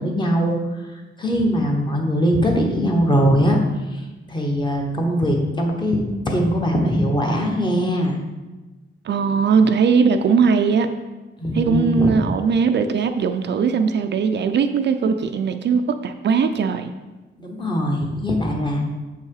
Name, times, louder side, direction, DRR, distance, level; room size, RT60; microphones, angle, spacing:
voice 1, 0.0-3.6 3.9-8.2 11.4-12.2 17.4-18.9, equal, 20° left, 1 dB, 1.1 m, -21 dB
voice 2, 9.1-10.9 11.5-16.9, right 5 dB, 55° right, 7 dB, 0.5 m, -19 dB
7.4 x 5.6 x 4.7 m, 1.2 s
wide cardioid pair, 170°, 21 cm